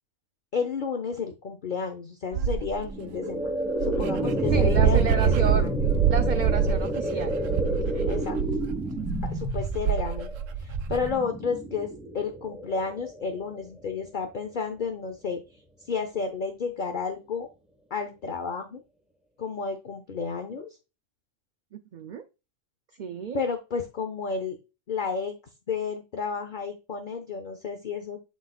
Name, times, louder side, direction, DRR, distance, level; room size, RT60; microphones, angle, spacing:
voice 1, 0.5-3.5 3.8-5.7 8.1-8.4 9.2-10.3 10.6-15.4 15.8-17.5 17.9-18.8 19.4-20.8 23.3-24.6 24.9-25.3 25.7-28.2, left 5 dB, 45° left, 5 dB, 0.8 m, -31 dB
Dog, 2.3-2.9 3.5-3.6 3.8-11.1, right 8 dB, 90° right, 1.0 m, -26 dB
sound 1, 2.8-13.9, right 1 dB, ahead, 1.1 m, -30 dB
voice 2, 4.5-5.6 6.1-7.3 7.9-8.1 21.7-22.2 23.0-23.4, right 7 dB, 55° right, 8 dB, 0.5 m, -31 dB
11.5 x 4.0 x 2.3 m, 0.28 s
omnidirectional pair, 1.3 m